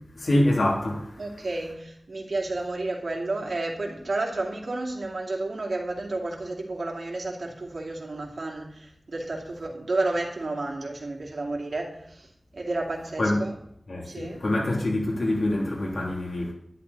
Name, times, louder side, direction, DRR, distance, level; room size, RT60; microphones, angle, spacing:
voice 1, 0.1-1.2 13.2-13.5 13.9-16.5, left 1 dB, 80° left, 2.9 m, -25 dB
voice 2, 1.2-12.3 12.5-13.5 14.0-14.4, right 2 dB, 85° right, 2.6 m, -31 dB
11.0 x 11.0 x 4.1 m
wide cardioid pair, 70°, 0 cm